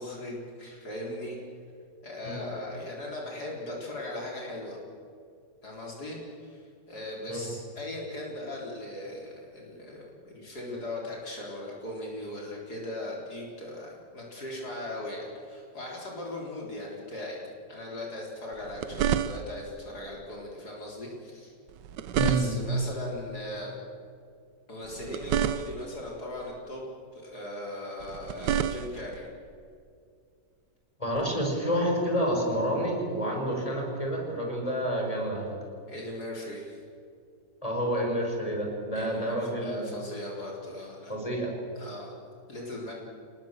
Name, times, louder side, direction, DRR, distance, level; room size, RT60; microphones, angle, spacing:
voice 1, 0.0-1.4 2.0-4.8 5.6-17.4 17.7-21.5 22.2-23.8 24.7-29.3 35.9-36.8 38.9-41.1 41.7-42.1 42.5-42.9, left 1 dB, 65° left, -2 dB, 4.6 m, -38 dB
sound 1, 18.5-19.7 21.7-22.9 24.8-26.0 28.0-29.2 31.2-31.3, right 9 dB, 90° right, 1.4 m, -30 dB
voice 2, 22.2-22.6 31.0-35.6 37.6-39.9 41.1-41.5, equal, 20° left, 0 dB, 5.6 m, -29 dB
28.0 x 20.0 x 7.6 m, 2.3 s
omnidirectional pair, 1.8 m